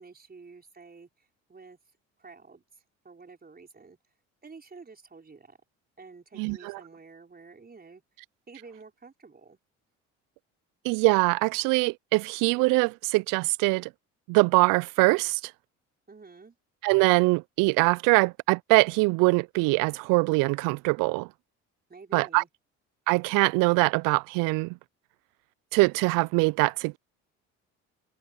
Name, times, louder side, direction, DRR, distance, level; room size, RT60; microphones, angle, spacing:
voice 1, 0.0-1.8 2.2-2.6 3.0-4.0 4.4-5.6 6.0-8.0 8.5-9.6 16.1-16.6 21.9-22.5, right 4 dB, 25° right, 5.4 m, -49 dB
voice 2, 6.4-6.8 10.8-13.9 14.3-15.4 16.8-21.3 22.1-22.4 23.1-24.8 25.7-27.0, right 26 dB, 70° right, 0.5 m, -23 dB
hypercardioid pair, 65°, 34 cm